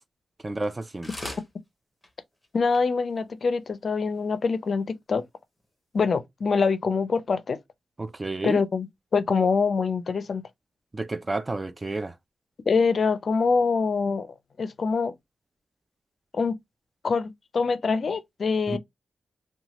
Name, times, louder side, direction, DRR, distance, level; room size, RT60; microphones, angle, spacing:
voice 1, 0.4-1.1 8.0-8.6 10.9-12.2 18.7-18.8, right 2 dB, 25° right, 0.3 m, -30 dB
sound 1, 0.6-0.8 1.0-1.5 2.0-2.1 2.4-2.5 2.7-2.8 3.4-3.5, left 1 dB, 10° left, 0.9 m, -37 dB
voice 2, 2.5-5.2 5.9-7.6 8.4-10.4 12.7-14.3 14.6-15.1 16.3-16.6 17.0-18.8, left 5 dB, 55° left, 0.4 m, -24 dB
2.9 x 2.2 x 2.8 m
cardioid pair, 80°, 0 cm